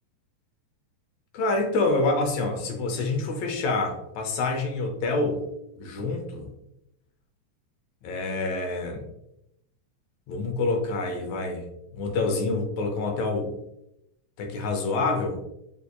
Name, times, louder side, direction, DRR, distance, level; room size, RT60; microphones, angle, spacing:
voice 1, 1.3-5.5 5.8-6.5 8.0-9.1 10.3-11.7 11.9-13.6 14.4-15.4, left 3 dB, 80° left, 3 dB, 1.9 m, -27 dB
6.7 x 2.8 x 2.2 m, 0.83 s
omnidirectional pair, 3.3 m